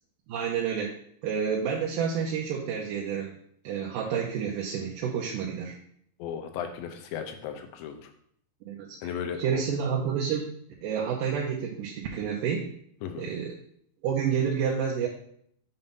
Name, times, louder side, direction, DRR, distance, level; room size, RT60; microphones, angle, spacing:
voice 1, 0.3-0.9 1.2-3.4 3.6-5.8 8.7-9.1 9.4-12.7 13.2-13.6 14.0-15.1, right 7 dB, 75° right, -3 dB, 2.1 m, -29 dB
voice 2, 6.2-8.1 9.0-9.6 13.0-13.3, left 8 dB, 80° left, 5 dB, 2.4 m, -36 dB
7.1 x 2.6 x 5.3 m, 0.66 s
omnidirectional pair, 4.2 m